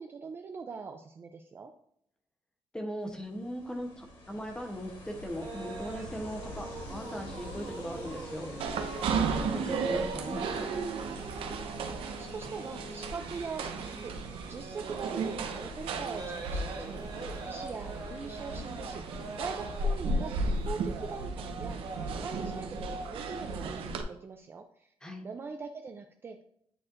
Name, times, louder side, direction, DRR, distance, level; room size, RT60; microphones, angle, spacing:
voice 1, 0.0-1.7 11.8-17.0 17.5-20.3 20.6-24.9 25.2-26.5, right 5 dB, 25° right, 5 dB, 0.3 m, -42 dB
voice 2, 2.7-8.6 9.0-10.7 25.0-25.2, equal, 10° left, 4 dB, 0.8 m, -39 dB
Ocean, 3.0-20.4, left 1 dB, 75° left, 2.2 m, -49 dB
sound 1, 5.4-23.9, right 3 dB, 45° right, 1.0 m, -44 dB
sound 2, 8.6-24.0, right 3 dB, 75° right, 0.7 m, -34 dB
9.8 x 4.4 x 2.5 m, 0.69 s
cardioid pair, 180°, 9 cm